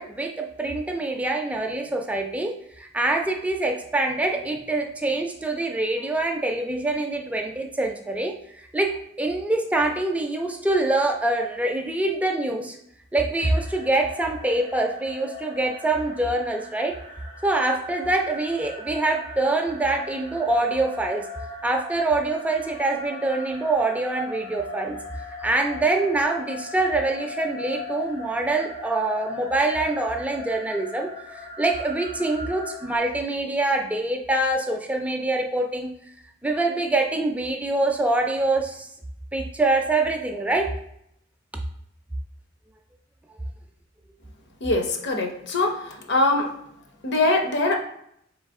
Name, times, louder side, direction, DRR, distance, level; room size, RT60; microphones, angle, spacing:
voice 1, 0.0-8.4 8.7-12.8 13.1-17.0 17.4-21.3 21.6-25.0 25.4-36.0 36.4-38.9 39.3-40.8, right 2 dB, 5° right, 3 dB, 0.3 m, -25 dB
sound 1, 13.4-33.0, left 3 dB, 90° left, 1.2 m, -39 dB
voice 2, 44.6-46.5 47.0-47.8, left 2 dB, 60° left, 3 dB, 0.8 m, -23 dB
4.0 x 3.2 x 3.6 m, 0.73 s
head